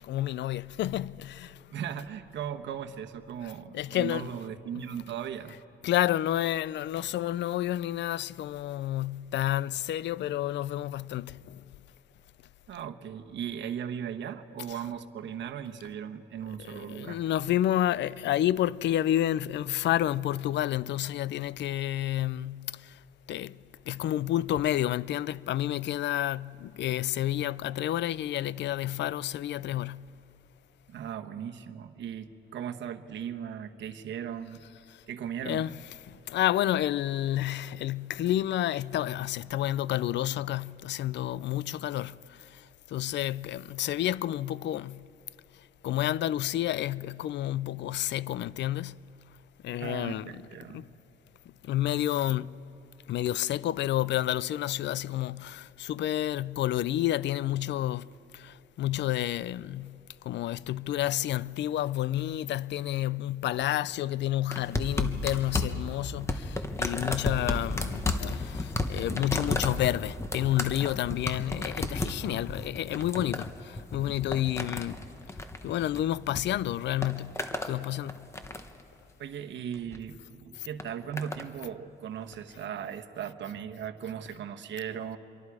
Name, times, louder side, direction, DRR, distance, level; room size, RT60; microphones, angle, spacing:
voice 1, 0.1-1.5 3.7-4.3 4.7-4.8 5.8-11.4 16.6-22.7 23.3-23.5 23.9-30.1 35.4-35.8 36.3-42.2 42.9-45.0 45.8-49.0 49.6-50.4 50.7-50.8 51.7-52.6 53.1-58.1 58.4-59.9 60.3-75.0 75.6-77.4 77.7-78.1, left 13 dB, 75° left, 0.4 m, -30 dB
voice 2, 1.7-5.6 12.7-17.2 30.9-34.6 35.1-35.7 49.8-50.9 79.2-85.2, right 8 dB, 80° right, 1.1 m, -38 dB
sound 1, 64.5-76.4 76.7-77.7 78.1-78.8 79.7-80.0 80.8-81.5 82.3-82.4, left 2 dB, 15° left, 1.0 m, -33 dB
27.0 x 23.5 x 4.8 m
wide cardioid pair, 165°, 19 cm